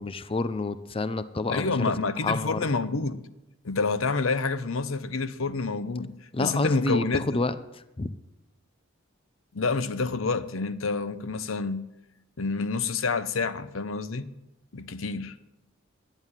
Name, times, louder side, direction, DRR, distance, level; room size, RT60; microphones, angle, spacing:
voice 1, 0.0-1.9 2.2-2.6 6.3-8.2, left 2 dB, 30° left, 0.5 m, -29 dB
voice 2, 1.5-3.2 3.6-6.1 6.4-7.4 9.5-11.9 12.4-14.3 14.7-15.4, left 4 dB, 85° left, 0.8 m, -28 dB
11.0 x 9.0 x 9.8 m
head